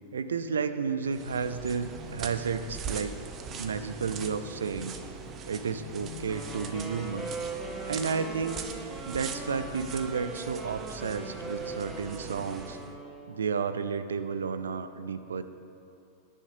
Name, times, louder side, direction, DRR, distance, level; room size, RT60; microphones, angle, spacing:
voice 1, 0.1-3.2 3.5-5.0 5.5-7.3 7.9-8.6 9.1-12.8 13.3-15.4, right 5 dB, 70° right, 12 dB, 0.6 m, -32 dB
sound 1, 1.0-13.0, right 6 dB, 30° right, 0.8 m, -41 dB
sound 2, 1.4-10.2 10.8-12.9, left 7 dB, 60° left, 1.2 m, -50 dB
Wind instrument woodwind instrument, 6.3-13.5, right 2 dB, 15° right, 2.3 m, -41 dB
20.0 x 10.0 x 2.8 m, 2.6 s
figure-of-eight pair, 90°, 0 cm